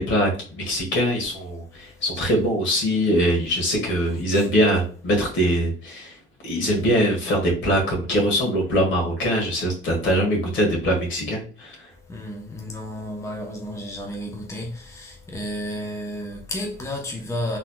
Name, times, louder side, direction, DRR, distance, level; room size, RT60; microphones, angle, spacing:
voice 1, 0.0-6.1 6.4-11.8, equal, 70° left, 1.7 m, -22 dB
voice 2, 12.1-17.6, left 1 dB, 15° left, 0.9 m, -32 dB
4.0 x 2.9 x 2.3 m
cardioid pair, 90°, 20 cm